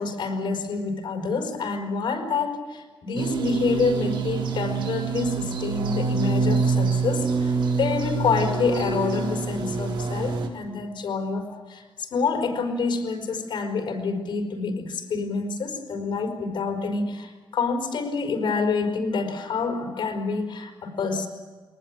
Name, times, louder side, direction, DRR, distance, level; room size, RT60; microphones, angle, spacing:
voice 1, 0.0-21.3, left 4 dB, 85° left, 3 dB, 4.8 m, -27 dB
sound 1, 3.1-10.5, right 4 dB, 90° right, 4.0 m, -26 dB
24.0 x 19.5 x 8.8 m, 1.4 s
wide cardioid pair, 155°, 8 cm